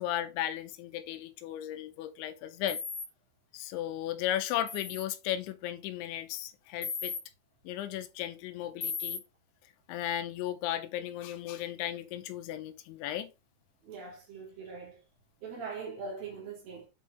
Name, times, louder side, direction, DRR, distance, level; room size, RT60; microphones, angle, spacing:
voice 1, 0.0-2.8 3.5-7.1 7.6-9.2 9.9-13.3, left 12 dB, 90° left, 3.1 m, -35 dB
sound 1, 2.7-3.0 4.7-5.0 6.8-7.2 8.8-9.2, left 5 dB, 70° left, 1.0 m, -36 dB
voice 2, 13.8-15.0 15.4-16.9, right 4 dB, 55° right, 3.8 m, -41 dB
7.9 x 4.6 x 3.4 m
omnidirectional pair, 5.4 m